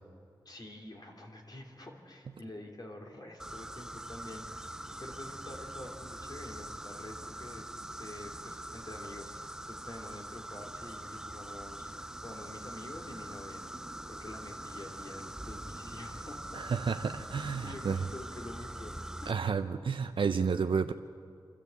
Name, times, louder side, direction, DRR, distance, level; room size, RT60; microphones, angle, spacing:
voice 1, 0.4-13.6 14.1-16.7 17.4-19.3, left 1 dB, 50° left, 0 dB, 2.9 m, -47 dB
sound 1, 3.4-19.3, right 1 dB, 5° right, 0.6 m, -43 dB
voice 2, 16.5-18.1 19.3-20.9, right 5 dB, 90° right, 7 dB, 0.5 m, -31 dB
26.5 x 13.0 x 8.2 m, 2.3 s
wide cardioid pair, 80°, 9 cm